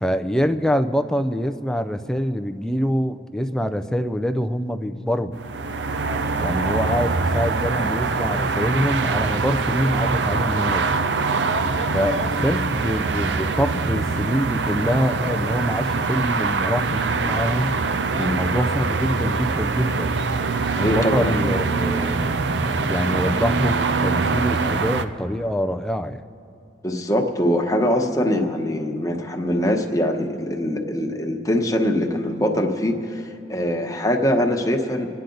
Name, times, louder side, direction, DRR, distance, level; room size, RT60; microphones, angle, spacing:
voice 1, 0.0-5.3 6.4-10.8 11.9-17.7 18.3-20.3 20.7-22.3 22.8-26.2, equal, 5° left, 8 dB, 0.4 m, -25 dB
sound 1, 5.3-25.0, right 4 dB, 75° right, 0.6 m, -23 dB
voice 2, 20.8-21.4 21.9-22.1 26.8-33.2 33.5-35.1, equal, 20° left, 2 dB, 1.1 m, -23 dB
27.0 x 9.9 x 3.9 m, 2.5 s
head